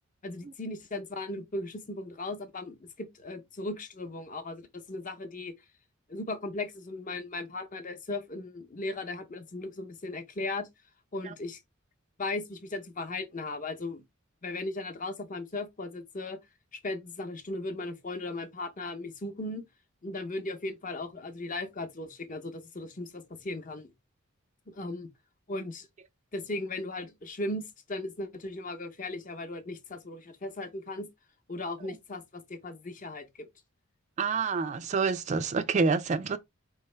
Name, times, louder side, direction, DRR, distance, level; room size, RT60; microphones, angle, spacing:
voice 1, 0.2-5.5 6.1-10.7 11.1-11.6 12.2-14.0 14.4-16.4 16.7-19.6 20.0-23.9 24.7-25.1 25.5-25.9 26.3-31.1 31.5-33.5, left 2 dB, 40° left, 0.8 m, -37 dB
voice 2, 34.2-36.4, right 4 dB, 35° right, 0.3 m, -27 dB
4.5 x 3.2 x 3.2 m
head